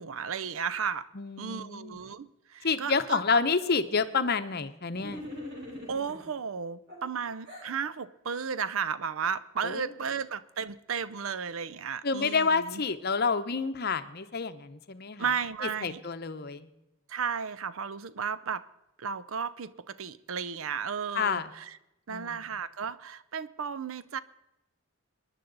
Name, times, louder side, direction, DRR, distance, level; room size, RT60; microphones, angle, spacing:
voice 1, 0.0-1.1 1.4-3.2 5.8-12.8 15.2-16.0 17.1-18.6 19.0-21.8 22.1-24.2, right 6 dB, 65° right, 0.6 m, -34 dB
voice 2, 1.1-2.0 2.6-5.2 9.6-9.9 12.0-15.3 15.6-16.7 21.1-21.5 22.1-22.4, left 5 dB, 45° left, 0.8 m, -29 dB
sound 1, 4.9-6.3 6.9-7.7, left 1 dB, 50° right, 4.2 m, -42 dB
23.5 x 11.0 x 4.0 m
head